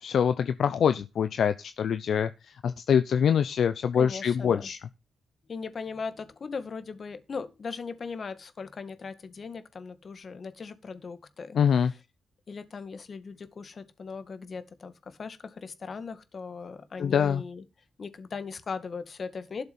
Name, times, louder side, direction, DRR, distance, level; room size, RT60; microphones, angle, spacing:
voice 1, 0.0-4.8 11.5-11.9 17.0-17.4, left 7 dB, 70° left, 0.7 m, -25 dB
voice 2, 3.9-4.7 5.5-11.6 12.5-17.6 18.0-19.6, left 5 dB, 50° left, 2.0 m, -38 dB
12.5 x 6.8 x 5.4 m
cardioid pair, 80°, 0 cm